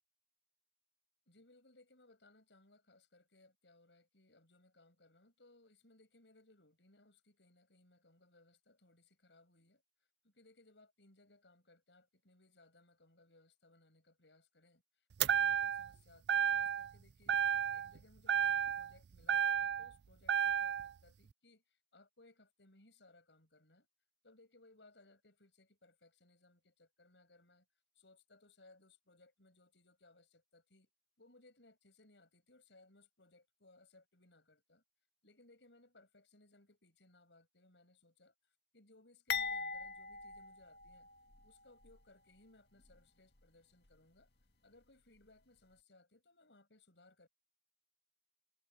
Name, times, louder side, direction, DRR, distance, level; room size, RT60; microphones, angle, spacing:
voice 1, 1.3-9.8 10.2-14.8 15.3-17.4 17.7-23.9 24.2-27.6 27.9-30.9 31.2-34.8 35.2-38.3 38.7-41.1 41.4-44.3 44.6-47.3, left 2 dB, 85° left, 6.8 m, -66 dB
sound 1, 15.2-15.9 16.3-16.9 17.3-18.0 18.3-19.9 20.3-20.9, right 8 dB, 75° right, 0.4 m, -32 dB
sound 2, 39.3-41.5 41.8-42.0 42.8-43.0, left 5 dB, 65° left, 1.9 m, -41 dB
head